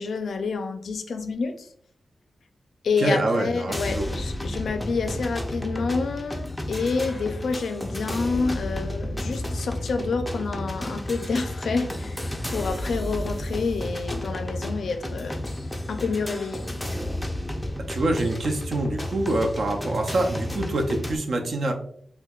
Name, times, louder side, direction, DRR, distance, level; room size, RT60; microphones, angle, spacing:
voice 1, 0.0-1.7 2.8-12.2 12.5-15.4 15.9-16.6 16.9-17.0, left 4 dB, 85° left, 7 dB, 0.4 m, -28 dB
voice 2, 3.0-4.1 17.9-21.7, right 2 dB, 65° right, 4 dB, 0.5 m, -25 dB
sound 1, 3.7-21.2, left 1 dB, 5° left, 0.4 m, -32 dB
4.4 x 2.2 x 2.3 m, 0.62 s
wide cardioid pair, 120°, 0 cm